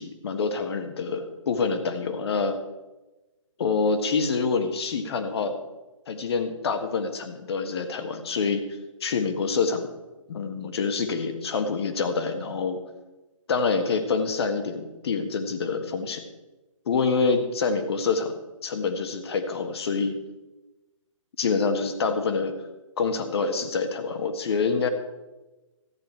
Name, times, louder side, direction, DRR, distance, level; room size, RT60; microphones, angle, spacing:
voice 1, 0.0-2.6 3.6-5.5 6.1-8.6 9.0-9.9 10.3-12.8 13.5-16.2 16.8-18.3 18.6-20.2 21.4-22.5 23.0-24.9, left 4 dB, 50° left, 8 dB, 1.5 m, -26 dB
14.0 x 9.2 x 4.5 m, 1.1 s
figure-of-eight pair, 140°, 17 cm